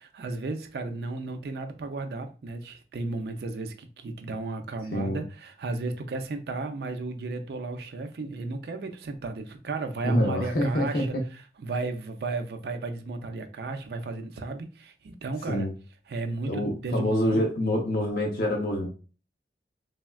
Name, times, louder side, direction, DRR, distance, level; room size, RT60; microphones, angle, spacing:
voice 1, 0.0-11.1 11.6-15.7 16.1-17.4, right 3 dB, 65° right, 0.4 m, -34 dB
voice 2, 10.0-11.0 15.5-15.7 16.4-18.9, equal, 55° left, 0.6 m, -26 dB
3.4 x 2.2 x 2.2 m
head